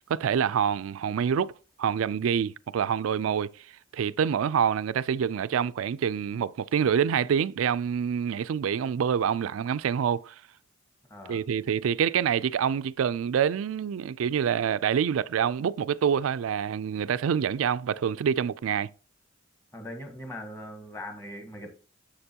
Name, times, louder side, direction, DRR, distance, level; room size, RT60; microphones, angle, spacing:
voice 1, 0.1-1.5 1.8-3.5 3.9-10.3 11.3-18.9, right 8 dB, 90° right, 0.3 m, -26 dB
voice 2, 11.1-11.4 19.7-21.7, left 1 dB, 10° left, 1.5 m, -40 dB
7.3 x 6.7 x 2.8 m
head